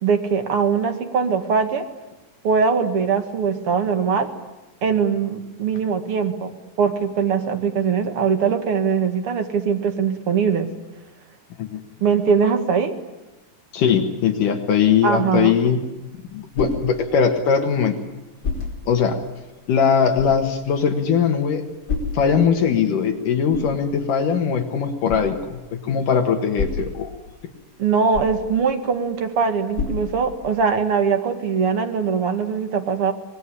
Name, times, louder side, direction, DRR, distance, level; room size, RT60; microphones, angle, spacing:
voice 1, 0.0-1.9 2.4-4.3 4.8-10.7 12.0-12.9 15.0-15.5 27.8-33.1, right 6 dB, 45° right, 7 dB, 2.2 m, -21 dB
voice 2, 13.7-15.8 16.3-17.9 18.9-19.2 19.7-21.6 22.1-25.6 25.8-27.1, left 7 dB, 65° left, 5 dB, 3.0 m, -20 dB
sound 1, 15.9-30.8, left 4 dB, 25° left, 4.8 m, -34 dB
25.0 x 20.5 x 9.9 m, 1.1 s
omnidirectional pair, 4.2 m